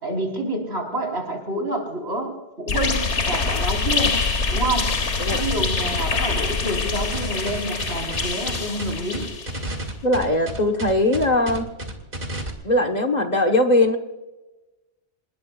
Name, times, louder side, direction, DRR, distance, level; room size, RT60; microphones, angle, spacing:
voice 1, 0.0-4.2 4.5-4.9 5.3-9.3, right 1 dB, 65° right, 2 dB, 4.6 m, -28 dB
sound 1, 2.7-9.7, left 4 dB, 80° left, 1.7 m, -25 dB
sound 2, 7.1-12.5, right 1 dB, 50° right, 2.4 m, -31 dB
voice 2, 10.0-11.6 12.6-14.0, left 1 dB, 40° left, 4 dB, 1.4 m, -20 dB
27.0 x 20.5 x 2.4 m, 1.1 s
omnidirectional pair, 1.2 m